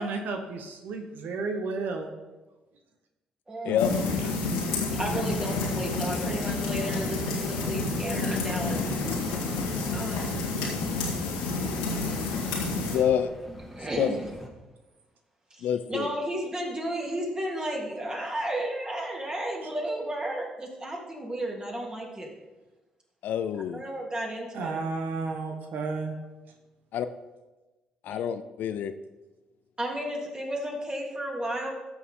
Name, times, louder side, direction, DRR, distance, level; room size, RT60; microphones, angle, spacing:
voice 1, 0.0-2.1 19.6-19.7 24.5-26.2, right 4 dB, 65° right, 4 dB, 1.0 m, -32 dB
voice 2, 3.5-3.8 5.0-8.9 9.9-10.3 10.6-10.7 13.7-14.2 15.5-22.3 23.7-24.8 28.1-28.2 29.8-31.7, right 1 dB, 25° right, -1 dB, 3.1 m, -33 dB
sound 1, 3.8-13.0, left 3 dB, 90° left, 1.9 m, -29 dB
sound 2, 4.9-14.5, equal, ahead, 2.0 m, -44 dB
voice 3, 12.9-13.3 14.0-14.1 15.6-16.1 23.2-23.8 26.9-27.1 28.0-28.9, left 9 dB, 65° left, 11 dB, 0.5 m, -27 dB
14.5 x 6.3 x 3.8 m, 1.1 s
hypercardioid pair, 50°, 3 cm